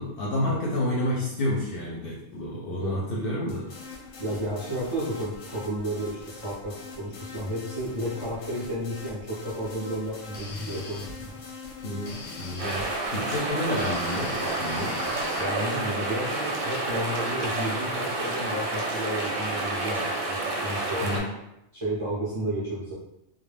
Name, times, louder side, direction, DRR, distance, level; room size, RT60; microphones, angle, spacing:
voice 1, 0.0-3.7 11.8-14.9 21.0-21.3, left 1 dB, 60° left, -4 dB, 0.6 m, -30 dB
voice 2, 2.6-2.9 4.2-11.4 15.4-21.2 21.7-22.9, equal, 40° right, -8 dB, 0.5 m, -32 dB
sound 1, 3.5-15.4, left 3 dB, 90° left, 1.0 m, -42 dB
sound 2, 12.6-21.2, right 2 dB, 85° right, 0.9 m, -29 dB
2.2 x 2.0 x 3.2 m, 0.84 s
omnidirectional pair, 1.3 m